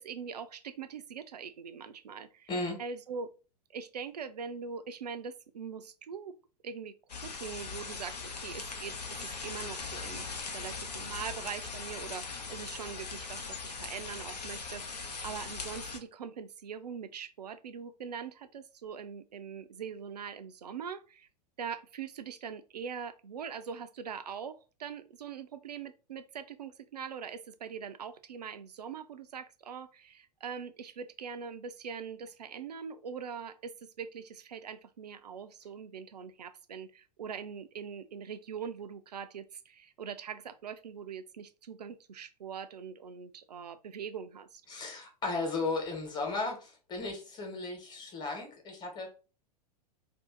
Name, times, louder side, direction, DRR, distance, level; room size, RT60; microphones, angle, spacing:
voice 1, 0.0-2.5 2.8-3.3 3.7-6.3 6.6-6.9 7.2-21.3 21.6-44.6, right 6 dB, 75° right, 0.4 m, -42 dB
voice 2, 2.5-2.8 44.7-49.1, left 3 dB, 20° left, 1.1 m, -35 dB
sound 1, 7.1-16.0, left 4 dB, 75° left, 0.7 m, -40 dB
2.6 x 2.4 x 3.7 m
figure-of-eight pair, 95°, 21 cm